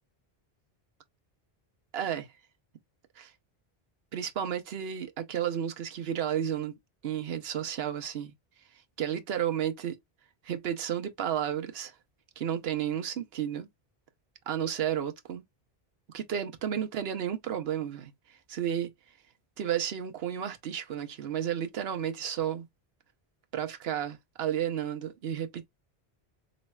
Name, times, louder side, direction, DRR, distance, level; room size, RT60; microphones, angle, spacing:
voice 1, 1.9-2.3 3.2-3.3 4.1-6.7 7.0-8.3 9.0-10.0 10.4-11.9 12.4-13.7 14.5-15.4 16.1-18.9 19.6-22.7 23.5-25.7, right 9 dB, 75° right, 1.0 m, -32 dB
4.1 x 3.1 x 2.2 m
omnidirectional pair, 1.1 m